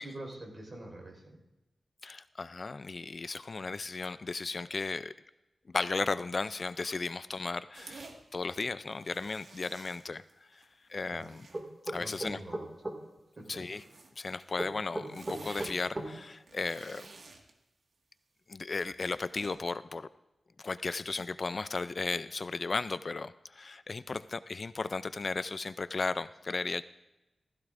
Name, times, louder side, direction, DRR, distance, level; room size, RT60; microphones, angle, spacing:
voice 1, 0.0-1.4 11.1-11.3 12.0-12.6 13.5-13.6, right 1 dB, 40° right, 1 dB, 4.4 m, -45 dB
voice 2, 2.0-5.1 5.7-10.2 10.5-10.6 10.9-11.5 11.9-12.4 13.5-13.8 14.2-17.1 18.5-20.1 20.6-26.8, left 3 dB, 45° left, 15 dB, 0.4 m, -35 dB
sound 1, 7.7-8.2 8.8-10.6 10.9-11.6 12.2-12.4 13.5-14.1 14.5-14.6 14.8-15.8 16.3-17.5 18.8-19.5, right 3 dB, 70° right, 1.7 m, -50 dB
sound 2, 11.5-13.0 14.6-16.1, right 1 dB, 25° right, 2.1 m, -36 dB
16.0 x 15.0 x 2.5 m, 0.99 s
wide cardioid pair, 90°, 0 cm